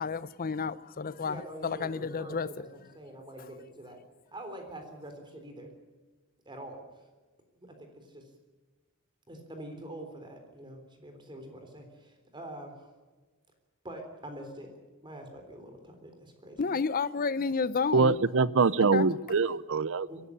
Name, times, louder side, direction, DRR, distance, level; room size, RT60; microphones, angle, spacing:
voice 1, 0.0-2.7 16.6-18.2 18.8-19.1, left 5 dB, 40° left, 0.6 m, -31 dB
voice 2, 1.2-4.0 4.3-5.7 6.5-7.0 7.6-8.2 9.3-12.9 13.8-14.7 15.0-16.6 20.1-20.2, right 1 dB, 20° right, 3.6 m, -45 dB
voice 3, 17.9-20.3, right 4 dB, 65° right, 0.6 m, -24 dB
23.0 x 12.5 x 10.0 m
head